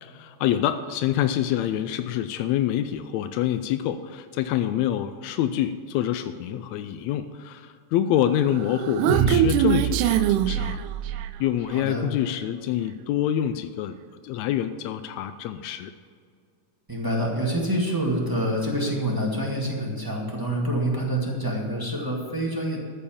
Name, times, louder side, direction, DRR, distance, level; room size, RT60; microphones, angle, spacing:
voice 1, 0.0-10.8 11.4-14.0 14.2-15.9, left 11 dB, 85° left, 10 dB, 1.6 m, -26 dB
Human voice, 8.4-11.4, right 11 dB, 80° right, 2.0 m, -23 dB
voice 2, 11.7-12.1 16.9-22.8, right 1 dB, 10° right, -2 dB, 1.0 m, -26 dB
14.0 x 6.9 x 7.1 m, 2.2 s
omnidirectional pair, 3.7 m